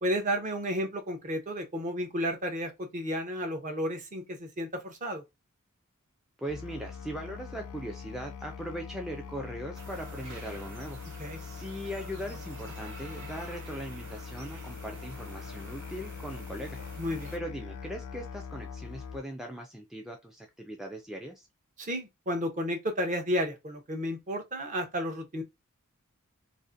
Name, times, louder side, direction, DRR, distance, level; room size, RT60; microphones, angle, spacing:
voice 1, 0.0-5.2 11.2-11.4 17.0-17.3 21.8-25.4, equal, 35° right, 0.6 m, -32 dB
voice 2, 6.4-11.0 11.4-16.8 17.3-21.5, equal, ahead, 0.3 m, -39 dB
Musical instrument, 6.5-19.2, left 6 dB, 85° left, 0.4 m, -43 dB
sound 1, 9.7-17.4, right 2 dB, 60° right, 1.2 m, -48 dB
2.5 x 2.4 x 2.4 m
head